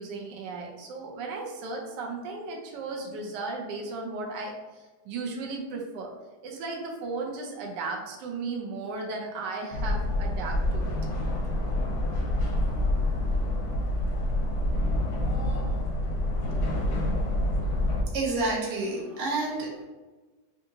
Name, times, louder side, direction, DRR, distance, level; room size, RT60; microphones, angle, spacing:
voice 1, 0.0-6.1 6.4-11.0 11.6-12.0, right 3 dB, 90° right, 0 dB, 1.3 m, -36 dB
sound 1, 9.7-18.0, left 1 dB, 65° left, 0.8 m, -27 dB
voice 2, 18.1-19.8, right 2 dB, 55° right, -2 dB, 1.0 m, -29 dB
3.8 x 2.5 x 2.7 m, 1.2 s
omnidirectional pair, 1.8 m